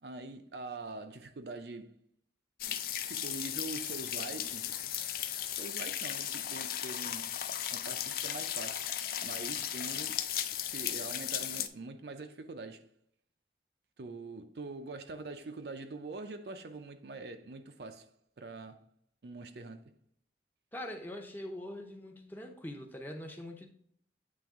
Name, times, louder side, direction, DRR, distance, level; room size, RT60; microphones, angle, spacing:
voice 1, 0.0-1.9 3.0-4.7 5.6-7.3 7.7-8.9 9.2-10.2 10.7-12.9 14.0-18.1 18.4-18.8 19.2-19.9, right 3 dB, 65° right, 0.5 m, -44 dB
sound 1, 2.6-11.7, left 10 dB, 55° left, 0.4 m, -36 dB
voice 2, 20.7-23.7, left 1 dB, 10° left, 0.7 m, -43 dB
8.7 x 3.4 x 3.5 m
head